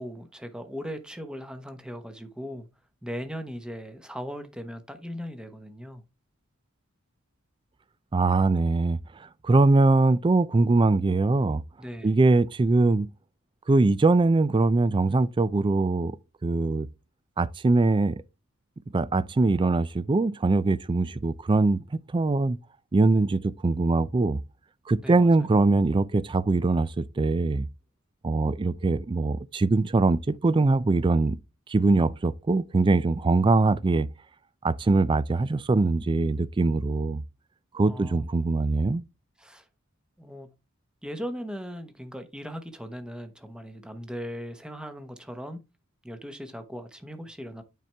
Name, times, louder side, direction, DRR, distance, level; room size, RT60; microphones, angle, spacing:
voice 1, 0.0-2.7 3.0-6.0 11.8-12.1 25.0-25.3 37.8-38.2 39.4-39.7 40.2-40.5 41.0-45.6 46.0-47.6, equal, 5° right, 0.9 m, -38 dB
voice 2, 8.1-9.0 9.4-11.6 12.0-13.1 13.7-16.2 16.4-16.9 17.4-18.2 18.9-22.6 22.9-24.4 24.9-27.7 28.2-31.4 31.7-34.1 34.6-37.2 37.7-39.0, right 3 dB, 25° right, 0.3 m, -22 dB
9.2 x 4.3 x 3.3 m
head